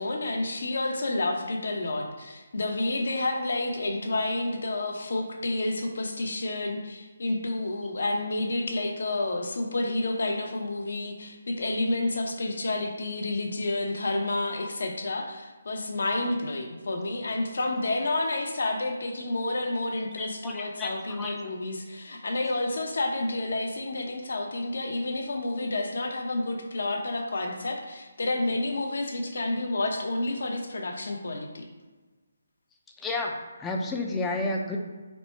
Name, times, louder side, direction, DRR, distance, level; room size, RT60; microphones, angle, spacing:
voice 1, 0.0-31.6, left 2 dB, 70° left, 3 dB, 0.8 m, -30 dB
voice 2, 20.2-20.9 21.2-21.3 33.0-34.8, left 2 dB, 5° left, 0 dB, 0.4 m, -31 dB
4.1 x 2.2 x 4.4 m, 1.3 s
hypercardioid pair, 170°, 0 cm